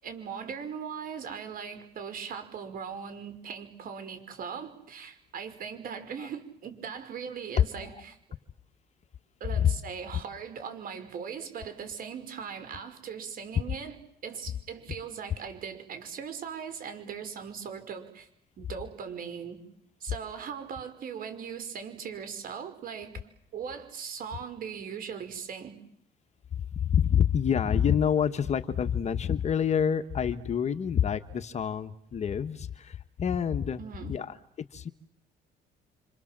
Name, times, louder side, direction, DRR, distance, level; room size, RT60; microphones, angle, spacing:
voice 1, 0.0-8.2 9.4-14.0 14.2-18.3 18.6-19.6 20.0-23.1 23.5-25.7 33.8-34.1, right 7 dB, 55° right, 9 dB, 5.4 m, -39 dB
voice 2, 26.7-33.8 34.1-34.4 34.7-34.9, left 8 dB, 40° left, 9 dB, 1.4 m, -27 dB
30.0 x 26.0 x 7.5 m, 0.71 s
cardioid pair, 110°, 17 cm